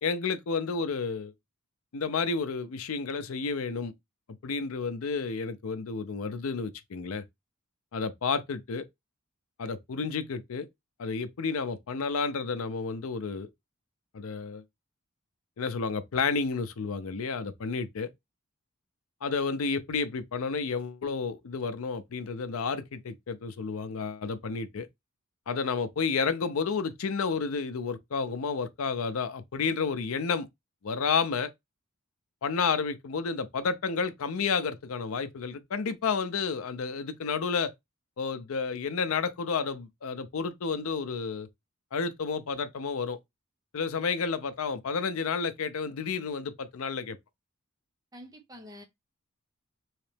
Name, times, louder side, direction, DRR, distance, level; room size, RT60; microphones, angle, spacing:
voice 1, 0.0-1.3 1.9-3.9 4.4-7.2 7.9-8.9 9.6-10.7 11.0-13.5 14.1-14.6 15.6-18.1 19.2-24.9 25.5-30.5 30.8-31.5 32.4-37.7 38.2-41.5 41.9-43.2 43.7-47.2, left 5 dB, 75° left, 0.5 m, -31 dB
voice 2, 48.1-48.8, equal, 20° right, 0.8 m, -47 dB
3.2 x 2.9 x 3.3 m
head